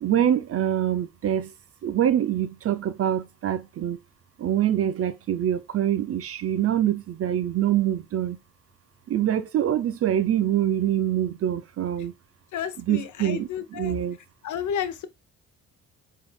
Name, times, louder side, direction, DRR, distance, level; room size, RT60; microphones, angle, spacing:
voice 1, 0.0-1.5 1.8-4.0 4.4-8.4 9.1-12.1 12.9-14.2, right 10 dB, 35° right, 0.5 m, -25 dB
voice 2, 12.5-14.0 14.4-15.1, left 8 dB, 45° left, 0.7 m, -31 dB
4.8 x 3.7 x 2.2 m
figure-of-eight pair, 45°, 41 cm